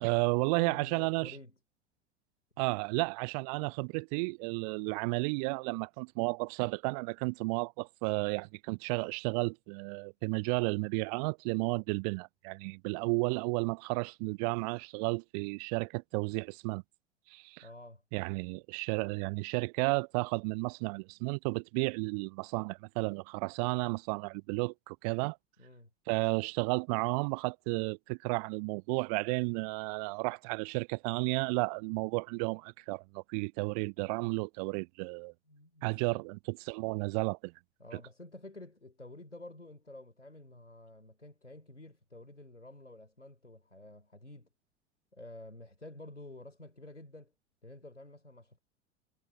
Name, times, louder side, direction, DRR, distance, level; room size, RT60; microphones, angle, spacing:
voice 1, 0.0-1.3 2.6-16.8 17.3-17.6 18.1-25.4 26.1-35.3 35.8-37.5 37.9-38.0, right 32 dB, 35° right, 0.4 m, -33 dB
voice 2, 0.6-1.6 17.6-18.0 25.6-25.9 34.0-34.1 35.5-36.2 37.8-44.5 45.1-47.3 47.6-48.6, left 2 dB, 90° left, 3.4 m, -50 dB
figure-of-eight pair, 85°, 35 cm